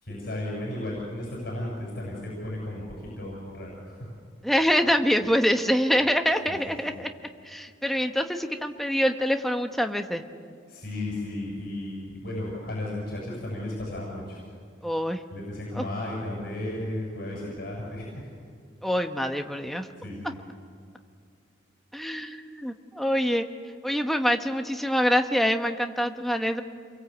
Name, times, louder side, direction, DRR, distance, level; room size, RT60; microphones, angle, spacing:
voice 1, 0.0-2.8 3.2-4.1 6.5-6.6 10.7-14.4 15.3-18.3 20.0-20.4, left 1 dB, 50° left, -3 dB, 7.1 m, -34 dB
voice 2, 4.4-7.1 7.4-10.2 14.8-15.2 15.7-15.8 18.8-19.9 21.9-23.5 23.8-26.6, equal, ahead, 5 dB, 1.2 m, -25 dB
28.5 x 23.0 x 8.1 m, 2.3 s
head